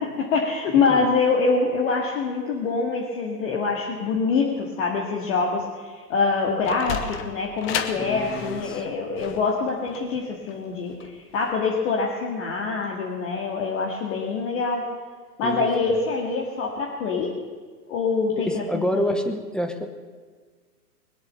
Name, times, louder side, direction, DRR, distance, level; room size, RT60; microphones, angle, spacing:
voice 1, 0.0-14.8 15.4-17.3 17.9-19.2, left 4 dB, 50° left, -2 dB, 2.2 m, -25 dB
Sliding door, 6.3-11.5, left 7 dB, 25° left, 1.1 m, -34 dB
voice 2, 8.0-8.8 15.4-16.0 18.4-19.9, equal, ahead, 6 dB, 0.8 m, -28 dB
21.0 x 8.1 x 6.8 m, 1.5 s
hypercardioid pair, 120°, 48 cm